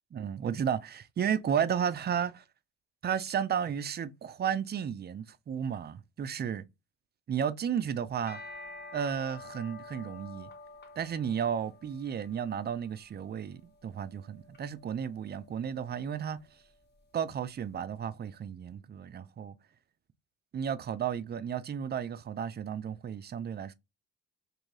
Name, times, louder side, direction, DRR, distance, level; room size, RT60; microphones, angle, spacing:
voice 1, 0.1-2.4 3.0-6.6 7.3-8.4 8.9-10.5 11.0-16.4 17.1-19.5 20.5-23.7, right 8 dB, 35° right, 0.4 m, -33 dB
sound 1, 8.1-17.5, left 3 dB, 35° left, 1.0 m, -50 dB
3.1 x 2.7 x 3.8 m
cardioid pair, 90°, 30 cm